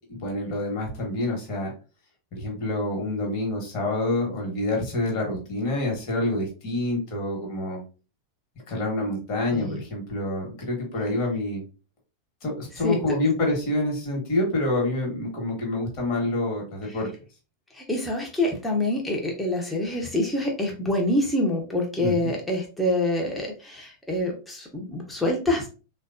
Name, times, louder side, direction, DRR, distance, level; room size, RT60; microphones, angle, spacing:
voice 1, 0.1-1.7 2.3-7.8 8.7-11.6 12.4-17.1 22.0-22.2, left 1 dB, 40° left, -1 dB, 1.1 m, -27 dB
voice 2, 9.5-9.8 12.7-13.0 16.9-17.0 17.7-25.7, left 1 dB, 5° left, 0 dB, 0.6 m, -26 dB
3.4 x 2.2 x 2.4 m, 0.34 s
figure-of-eight pair, 90°, 0 cm